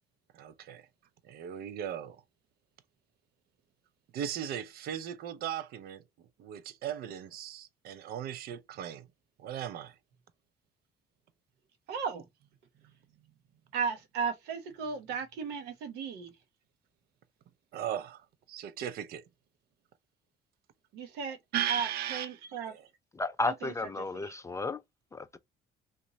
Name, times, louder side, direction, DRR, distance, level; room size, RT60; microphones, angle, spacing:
voice 1, 0.3-0.8 1.3-2.2 4.1-6.0 6.4-9.1 9.4-9.9 17.7-18.2 18.5-19.2 21.5-22.4 22.7-22.9, right 10 dB, 65° right, 0.5 m, -37 dB
voice 2, 11.9-12.3 13.7-16.3 20.9-21.4 21.7-22.7, right 6 dB, 90° right, 0.9 m, -35 dB
voice 3, 23.1-24.8 25.1-25.4, left 3 dB, 15° left, 0.3 m, -33 dB
3.0 x 2.1 x 3.8 m
cardioid pair, 110°, 17 cm